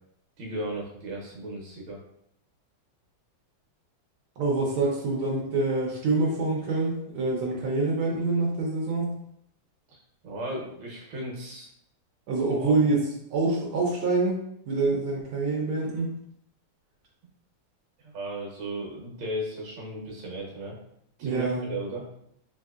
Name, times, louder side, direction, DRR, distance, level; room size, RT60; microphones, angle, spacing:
voice 1, 0.4-2.0 9.9-11.7 12.6-13.0 18.0-20.7 21.2-22.0, right 1 dB, 70° right, -2 dB, 1.6 m, -35 dB
voice 2, 4.4-9.1 12.3-13.1 13.3-16.1 21.2-21.6, right 3 dB, 85° right, -3 dB, 1.6 m, -26 dB
4.0 x 2.7 x 2.3 m, 0.74 s
omnidirectional pair, 2.2 m